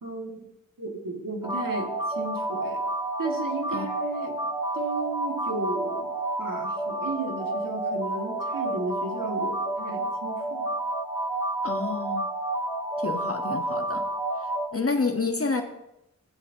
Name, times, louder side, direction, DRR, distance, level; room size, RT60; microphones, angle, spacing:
voice 1, 0.0-0.3 0.8-2.8 3.2-4.4 4.7-6.1 6.4-10.7, right 2 dB, 80° right, 1 dB, 1.8 m, -34 dB
sound 1, 1.4-14.7, right 2 dB, 15° right, 4.0 m, -30 dB
voice 2, 11.6-12.2 13.0-14.1 14.7-15.6, left 4 dB, 45° left, 4 dB, 1.0 m, -28 dB
14.5 x 9.5 x 2.7 m, 0.86 s
wide cardioid pair, 55°, 32 cm